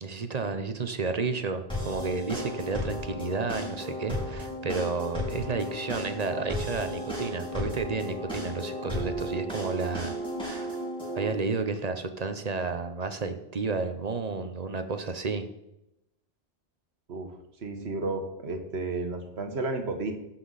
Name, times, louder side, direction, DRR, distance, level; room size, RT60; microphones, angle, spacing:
voice 1, 0.0-10.1 10.4-10.8 11.2-15.5, right 4 dB, 45° right, 8 dB, 0.8 m, -31 dB
sound 1, 1.7-11.3, left 1 dB, 5° left, 4.4 m, -34 dB
voice 2, 17.6-20.1, right 3 dB, 85° right, 5 dB, 1.5 m, -32 dB
15.5 x 5.9 x 4.0 m, 0.89 s
omnidirectional pair, 1.1 m